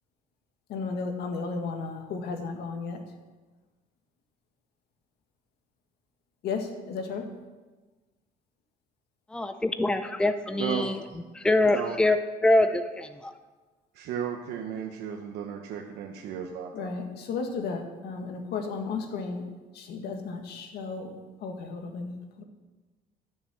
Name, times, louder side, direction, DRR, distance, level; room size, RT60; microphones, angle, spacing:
voice 1, 0.7-3.0 6.4-7.3 16.7-19.4 19.7-21.1 21.4-22.1 22.4-22.5, left 4 dB, 70° left, 4 dB, 1.9 m, -34 dB
voice 2, 9.3-11.0 11.3-12.2 12.4-13.3, left 2 dB, 5° left, 9 dB, 0.6 m, -24 dB
voice 3, 10.6-10.9 11.7-12.0 13.9-16.9, right 8 dB, 85° right, 2 dB, 1.0 m, -34 dB
12.0 x 7.3 x 6.3 m, 1.2 s
cardioid pair, 110°, 17 cm